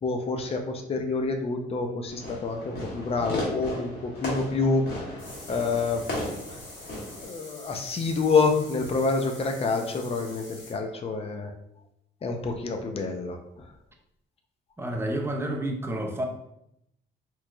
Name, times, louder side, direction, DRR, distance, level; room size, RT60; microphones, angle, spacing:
voice 1, 0.0-5.2 5.5-6.0 7.1-11.5 12.2-13.7, left 4 dB, 30° left, 4 dB, 0.5 m, -27 dB
Fireworks, 2.1-7.2, left 1 dB, 55° left, 1.3 m, -35 dB
sound 1, 5.2-10.7, left 2 dB, 80° left, 1.4 m, -46 dB
voice 2, 14.8-16.3, right 1 dB, 10° right, 2 dB, 0.6 m, -29 dB
3.5 x 3.1 x 2.2 m, 0.78 s
cardioid pair, 90°, 20 cm